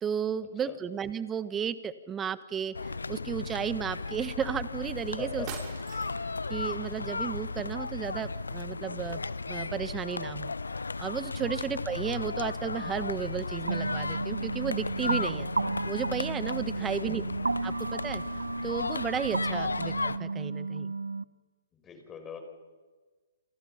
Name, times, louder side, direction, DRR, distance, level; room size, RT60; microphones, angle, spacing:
voice 1, 0.0-2.7 3.1-5.4 6.5-9.2 9.5-10.5 11.0-15.5 15.8-17.2 17.6-18.2 18.6-20.9, right 8 dB, 15° right, 14 dB, 1.3 m, -33 dB
sound 1, 2.7-20.2, left 3 dB, 85° left, 0.7 m, -35 dB
voice 2, 5.1-5.5 16.7-17.3 19.5-19.8 21.7-22.4, left 6 dB, 15° left, 6 dB, 5.1 m, -43 dB
sound 2, 5.5-6.4, right 7 dB, 35° right, 7.3 m, -43 dB
sound 3, 13.7-21.2, right 3 dB, 85° right, 0.7 m, -33 dB
29.0 x 27.0 x 5.8 m, 1.3 s
figure-of-eight pair, 130°, 0 cm